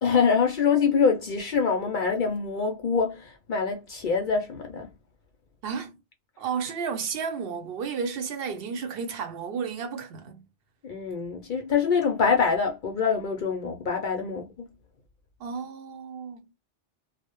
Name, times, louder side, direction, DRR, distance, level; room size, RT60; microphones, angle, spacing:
voice 1, 0.0-4.9 10.8-14.5, left 5 dB, 60° left, 0.5 m, -25 dB
voice 2, 5.6-6.0 6.4-10.5 15.4-16.5, right 6 dB, 60° right, 0.8 m, -32 dB
2.1 x 2.1 x 2.9 m
omnidirectional pair, 1.2 m